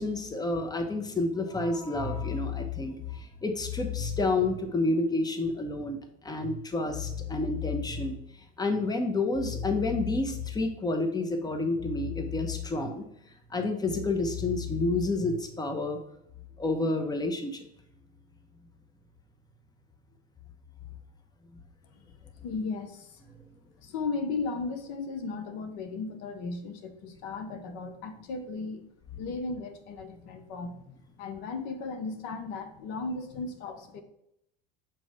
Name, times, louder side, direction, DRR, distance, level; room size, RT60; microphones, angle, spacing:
voice 1, 0.0-6.0 6.2-8.2 8.6-13.1 13.5-16.0 16.6-17.7, left 3 dB, 15° left, 6 dB, 0.9 m, -29 dB
voice 2, 22.4-23.3 23.8-28.8 29.2-34.0, left 4 dB, 65° left, 8 dB, 1.0 m, -36 dB
6.7 x 3.1 x 5.4 m, 0.77 s
supercardioid pair, 95°, 30 cm